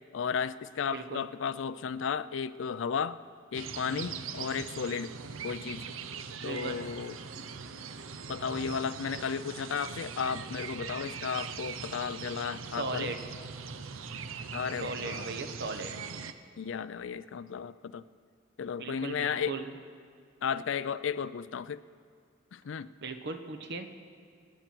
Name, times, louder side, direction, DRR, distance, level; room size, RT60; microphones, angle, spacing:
voice 1, 0.1-3.2 3.5-5.1 5.4-5.9 6.4-7.2 8.3-13.1 14.5-15.4 16.6-18.0 18.6-19.6 20.4-21.8 22.5-22.9, left 6 dB, 65° left, 15 dB, 0.4 m, -34 dB
voice 2, 0.9-1.2 6.4-6.8 12.8-13.2 14.8-15.9 18.8-19.7 23.0-23.9, right 3 dB, 55° right, 7 dB, 1.0 m, -37 dB
sound 1, 3.5-16.3, right 6 dB, 85° right, 0.6 m, -41 dB
25.0 x 9.2 x 4.5 m, 2.1 s
head